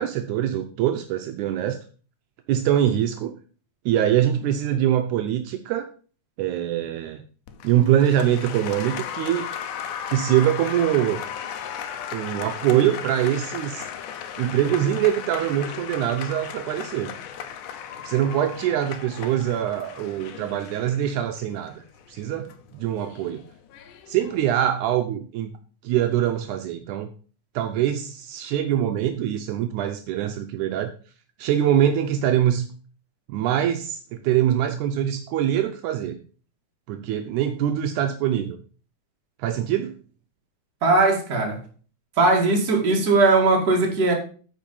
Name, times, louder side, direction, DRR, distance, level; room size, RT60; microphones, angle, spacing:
voice 1, 0.0-1.8 2.5-3.3 3.9-5.9 6.4-7.2 7.6-9.5 10.1-11.2 12.1-13.9 14.4-17.1 18.0-23.4 24.1-25.5 25.8-27.1 27.6-30.9 31.4-32.7 33.3-36.2 36.9-38.6 39.4-39.9, right 11 dB, 80° right, 2.0 m, -23 dB
Applause, 7.5-24.6, left 8 dB, 85° left, 2.3 m, -36 dB
voice 2, 40.8-41.6 42.2-44.1, right 3 dB, 35° right, 2.3 m, -19 dB
9.1 x 5.3 x 5.4 m
omnidirectional pair, 3.6 m